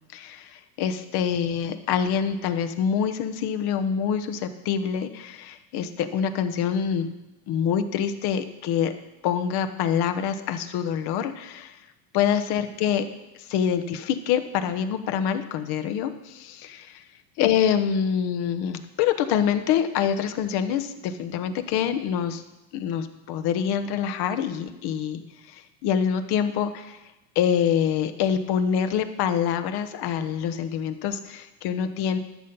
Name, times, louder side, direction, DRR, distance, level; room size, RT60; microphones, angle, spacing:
voice 1, 0.1-7.1 7.5-8.9 9.2-11.8 12.1-13.1 13.4-17.0 17.4-22.4 22.7-27.0 27.3-32.2, left 8 dB, 50° left, 10 dB, 1.1 m, -26 dB
13.0 x 6.6 x 5.5 m, 1.0 s
hypercardioid pair, 85°, 49 cm